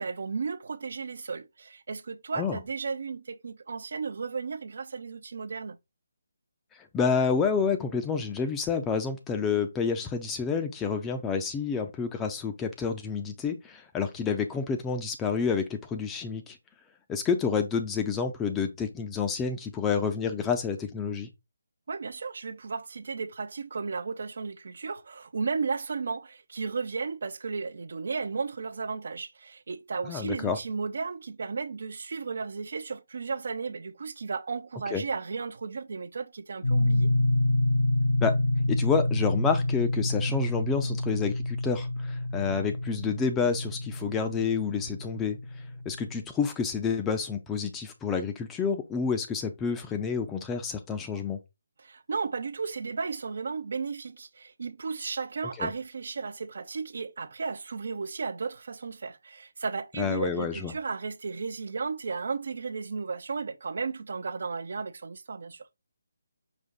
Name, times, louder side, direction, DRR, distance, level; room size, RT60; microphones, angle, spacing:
voice 1, 0.0-5.8 21.9-37.1 51.8-65.7, right 4 dB, 60° right, 0.5 m, -34 dB
voice 2, 6.9-16.6 17.1-21.3 30.1-30.6 34.9-35.0 38.2-38.4 38.7-45.4 45.9-51.4 55.6-55.7 60.0-60.7, left 5 dB, 10° left, 0.5 m, -29 dB
sound 1, 36.6-46.2, left 1 dB, 85° left, 0.9 m, -28 dB
5.0 x 2.6 x 3.9 m
hypercardioid pair, 165°, 0 cm